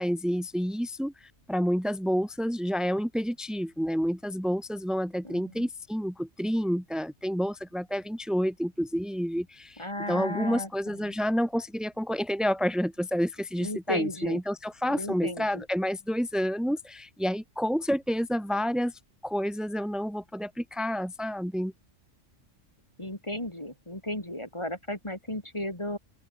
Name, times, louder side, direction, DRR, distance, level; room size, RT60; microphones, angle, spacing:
voice 1, 0.0-21.7, equal, ahead, 2.4 m, -29 dB
voice 2, 5.2-5.7 9.8-11.0 13.6-14.4 14.9-15.6 23.0-26.0, left 1 dB, 20° left, 3.2 m, -35 dB
open air
omnidirectional pair, 1.3 m